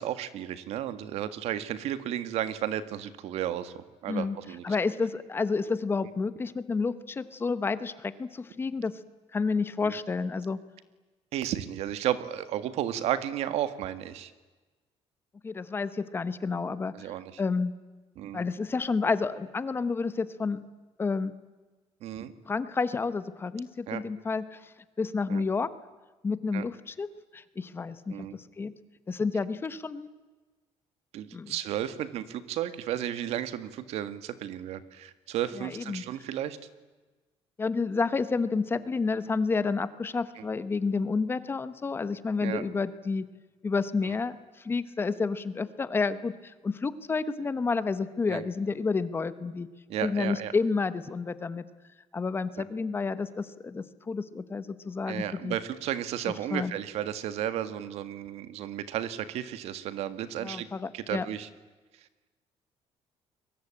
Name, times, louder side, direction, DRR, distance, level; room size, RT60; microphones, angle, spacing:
voice 1, 0.0-4.8 9.8-9.9 11.3-14.3 16.9-17.4 18.2-18.4 22.0-22.3 23.9-24.0 25.3-25.4 26.5-26.6 28.1-28.4 31.1-36.6 40.4-40.5 42.4-42.7 44.0-44.1 48.3-48.4 49.9-50.5 52.6-52.7 55.1-60.7 60.9-61.5, right 11 dB, 70° right, 12 dB, 1.8 m, -33 dB
voice 2, 4.6-8.9 9.3-10.6 15.4-17.7 18.3-20.6 21.0-21.3 22.5-24.7 25.0-25.7 26.2-27.1 27.3-28.3 28.6-28.7 29.1-30.1 31.3-31.5 35.6-36.0 37.6-43.2 43.6-49.7 50.0-51.6 52.1-55.5 56.5-56.7 60.4-61.3, left 4 dB, 20° left, 13 dB, 1.0 m, -30 dB
29.5 x 23.0 x 8.8 m, 1.2 s
cardioid pair, 165°, 11 cm